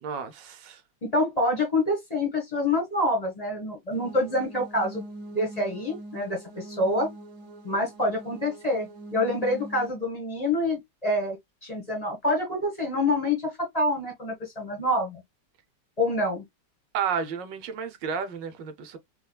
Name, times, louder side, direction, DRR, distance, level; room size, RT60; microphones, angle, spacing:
voice 1, 0.0-0.8 16.9-19.0, right 7 dB, 90° right, 1.4 m, -32 dB
voice 2, 1.0-5.0 5.3-7.1 7.6-11.4 11.6-15.2 16.0-16.4, left 1 dB, 25° left, 1.3 m, -26 dB
sound 1, 3.9-9.9, right 1 dB, 55° right, 1.0 m, -43 dB
3.6 x 3.1 x 2.3 m
omnidirectional pair, 1.9 m